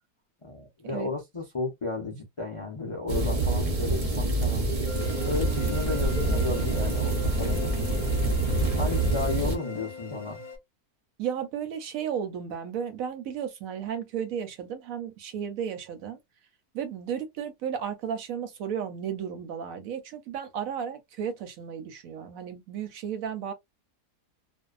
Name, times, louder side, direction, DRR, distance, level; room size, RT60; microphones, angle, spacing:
voice 1, 0.4-4.7 5.2-7.7 8.8-10.4, left 3 dB, 55° left, 0.3 m, -33 dB
sound 1, 3.1-9.6, right 2 dB, 55° right, 0.4 m, -26 dB
sound 2, 4.9-10.6, left 4 dB, 40° left, 0.7 m, -41 dB
voice 2, 11.2-16.2 16.7-23.5, right 8 dB, 70° right, 0.9 m, -34 dB
2.6 x 2.1 x 2.3 m
omnidirectional pair, 1.7 m